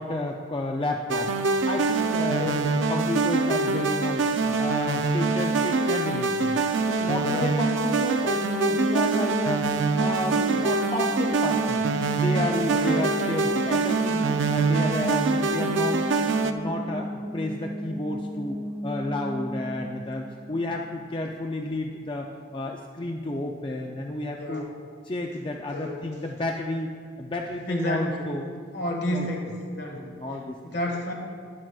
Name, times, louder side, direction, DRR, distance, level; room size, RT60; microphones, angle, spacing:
voice 1, 0.0-1.3 1.7-6.6 6.9-9.7 10.0-11.8 12.1-14.2 14.5-16.1 16.4-18.6 18.8-24.6 25.0-26.9 27.2-28.4 29.1-29.3 29.9-30.6, left 1 dB, 25° left, 1 dB, 0.4 m, -31 dB
sound 1, 1.1-16.5, right 4 dB, 85° right, 0.5 m, -24 dB
voice 2, 2.2-2.7 7.2-7.7 12.7-13.1 24.3-24.7 25.7-26.0 27.7-28.3 28.7-30.0 30.6-31.1, left 1 dB, 65° left, 0 dB, 1.6 m, -31 dB
sound 2, 8.2-21.1, equal, 15° right, 1.0 m, -34 dB
12.0 x 10.0 x 2.3 m, 2.1 s
head